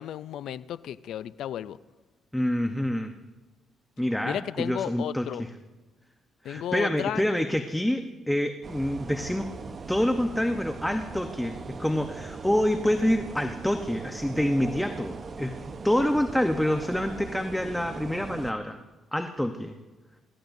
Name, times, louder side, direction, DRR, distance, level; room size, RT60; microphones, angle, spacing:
voice 1, 0.0-1.8 4.2-5.4 6.4-7.2, left 11 dB, 75° left, 16 dB, 0.4 m, -33 dB
voice 2, 2.3-3.1 4.0-5.5 6.4-9.5 9.9-15.6 15.8-18.8 19.1-19.7, left 1 dB, 5° left, 5 dB, 0.9 m, -27 dB
sound 1, 8.6-18.5, right 4 dB, 45° right, 0.9 m, -40 dB
26.5 x 14.0 x 2.7 m, 1.2 s
cardioid pair, 90°, 0 cm